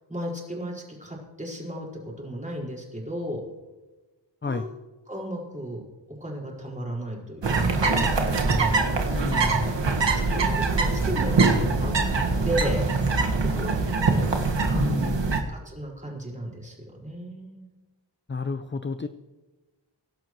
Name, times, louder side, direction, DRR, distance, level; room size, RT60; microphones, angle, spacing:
voice 1, 0.0-1.9 2.2-3.4 4.4-4.7 5.0-5.8 6.2-8.1 8.8-9.2 10.1-11.3 11.8-11.9 12.4-12.8 13.4-13.7 14.8-17.7, right 1 dB, 15° right, -3 dB, 5.0 m, -35 dB
sound 1, 7.4-15.4, right 3 dB, 75° right, 1.8 m, -23 dB
voice 2, 9.1-9.7 14.7-15.2 18.3-19.1, left 4 dB, 25° left, 9 dB, 0.6 m, -31 dB
24.0 x 11.5 x 3.1 m, 1.2 s
wide cardioid pair, 105°, 44 cm